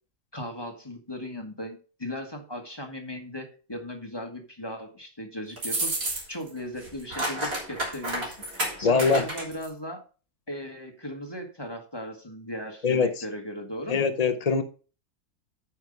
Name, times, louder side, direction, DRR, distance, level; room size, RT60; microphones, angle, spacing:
voice 1, 0.3-5.9 6.3-10.0 10.5-14.1, equal, 15° left, 1.3 m, -37 dB
sound 1, 5.6-6.5 6.8-9.7, right 1 dB, 65° right, 3.8 m, -30 dB
voice 2, 8.8-9.2 12.8-13.2 13.9-14.6, left 5 dB, 65° left, 0.3 m, -23 dB
9.1 x 5.8 x 5.2 m
omnidirectional pair, 1.6 m